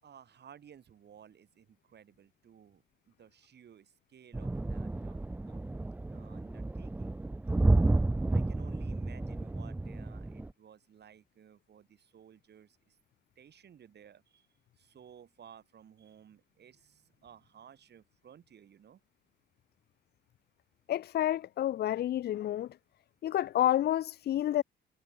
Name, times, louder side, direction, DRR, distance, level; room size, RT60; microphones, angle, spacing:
voice 1, 0.0-5.2 5.5-5.7 6.1-7.2 8.3-13.0 13.4-14.5 14.8-19.0, right 8 dB, 55° right, 5.2 m, -56 dB
sound 1, 4.3-10.5, right 2 dB, 10° right, 0.4 m, -31 dB
voice 2, 20.9-22.7 23.2-24.6, left 12 dB, 55° left, 0.4 m, -29 dB
cardioid pair, 90°, 20 cm